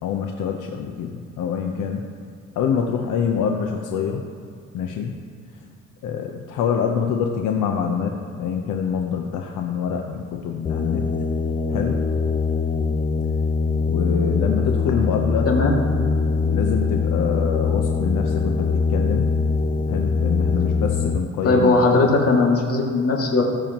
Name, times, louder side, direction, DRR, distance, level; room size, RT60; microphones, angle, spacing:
voice 1, 0.0-2.0 2.5-4.2 4.7-5.1 6.0-11.1 11.7-12.1 13.9-15.5 16.5-19.3 19.9-21.9, left 7 dB, 80° left, 3 dB, 0.9 m, -25 dB
sound 1, 10.7-21.2, left 4 dB, 30° left, 0.6 m, -22 dB
voice 2, 15.5-15.8 21.4-23.4, left 3 dB, 50° left, -1 dB, 2.4 m, -18 dB
19.5 x 7.1 x 3.0 m, 2.3 s
cardioid pair, 90°, 30 cm